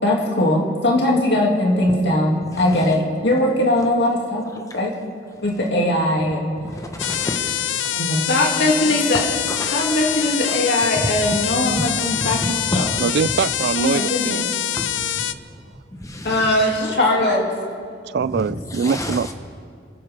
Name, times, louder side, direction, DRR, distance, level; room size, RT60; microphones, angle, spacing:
voice 1, 0.0-4.4 4.7-4.9 5.4-6.5 7.9-9.3 9.7-12.9 13.8-14.5 16.2-17.5, left 1 dB, 65° left, -1 dB, 2.7 m, -20 dB
voice 2, 6.8-7.9 9.5-10.1 10.5-10.6 11.7-13.0 14.8-14.9 15.2-15.3 16.0-16.5 18.3-19.3, left 1 dB, 20° left, 4 dB, 1.2 m, -30 dB
sound 1, 7.0-15.3, left 11 dB, 90° left, 0.5 m, -25 dB
voice 3, 13.0-14.5 18.0-19.3, right 6 dB, 60° right, 18 dB, 0.3 m, -23 dB
28.5 x 13.5 x 3.7 m, 2.3 s
head